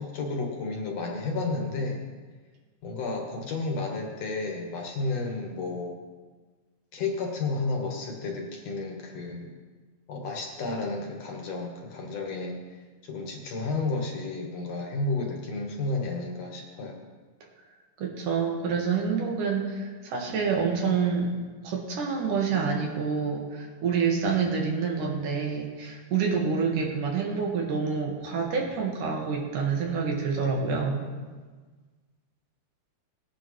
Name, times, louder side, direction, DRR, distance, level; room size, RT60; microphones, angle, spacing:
voice 1, 0.0-2.0 2.8-6.0 6.9-9.5 10.1-12.8 13.0-17.0, left 3 dB, 60° left, 1 dB, 2.3 m, -32 dB
voice 2, 18.0-21.3 21.6-31.1, right 5 dB, 75° right, -1 dB, 3.2 m, -27 dB
19.0 x 9.7 x 3.1 m, 1.4 s
omnidirectional pair, 3.7 m